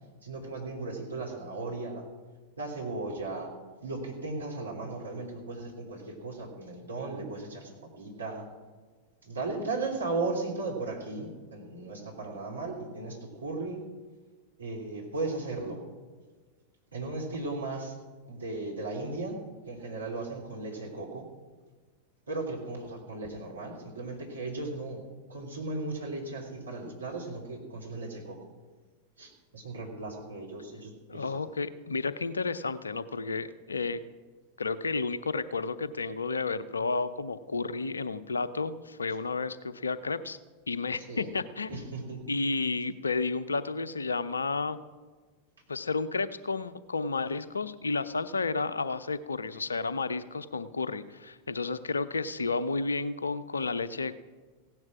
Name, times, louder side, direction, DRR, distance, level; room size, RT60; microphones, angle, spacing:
voice 1, 0.2-2.1 2.6-3.5 3.8-8.5 9.2-13.8 14.6-15.8 16.9-18.0 18.3-19.4 19.7-21.3 22.3-25.0 25.3-28.4 29.2-31.4 41.0-41.3 41.7-42.2, right 3 dB, 75° right, 0 dB, 3.2 m, -36 dB
voice 2, 31.1-34.0 34.6-40.4 40.7-41.8 42.3-44.8 45.7-54.2, left 4 dB, 75° left, 16 dB, 0.6 m, -32 dB
16.5 x 10.5 x 6.2 m, 1.4 s
figure-of-eight pair, 90°, 0 cm